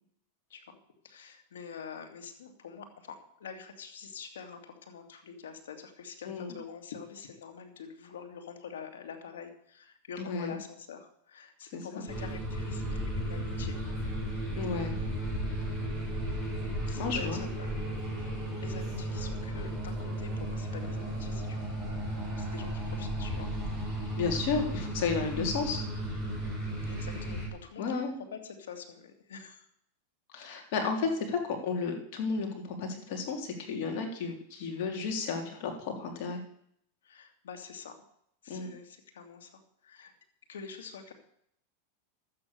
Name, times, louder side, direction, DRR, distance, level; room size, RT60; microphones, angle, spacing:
voice 1, 1.0-13.8 16.9-17.7 18.6-21.6 22.4-23.5 26.9-28.0 28.3-29.7 37.0-38.0 38.4-40.1 40.5-41.1, left 6 dB, 90° left, 4 dB, 2.5 m, -46 dB
voice 2, 6.3-6.6 10.2-10.6 11.7-12.1 14.6-15.0 17.0-17.4 24.2-25.8 27.8-28.2 30.3-36.4 38.5-38.7, left 5 dB, 60° left, 3 dB, 3.5 m, -33 dB
sound 1, 12.1-27.5, right 1 dB, 10° left, 7.3 m, -34 dB
12.5 x 8.8 x 6.9 m, 0.70 s
supercardioid pair, 130°, 0 cm